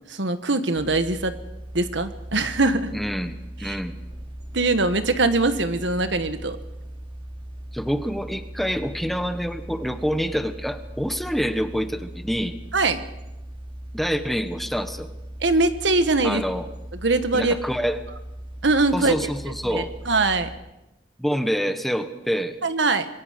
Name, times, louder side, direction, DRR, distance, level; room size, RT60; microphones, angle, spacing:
voice 1, 0.1-1.3 1.7-2.9 3.6-3.8 4.5-6.6 12.7-13.0 15.4-16.4 17.0-17.5 18.6-19.1 19.6-20.5 22.6-23.1, right 3 dB, 80° right, 10 dB, 1.5 m, -22 dB
sound 1, 0.7-20.6, right 1 dB, 30° right, 3.5 m, -39 dB
voice 2, 2.9-3.9 7.7-12.6 13.9-15.1 16.2-16.7 17.3-18.0 18.9-19.9 21.2-22.6, equal, ahead, 9 dB, 1.1 m, -27 dB
26.5 x 22.0 x 5.2 m, 0.95 s
head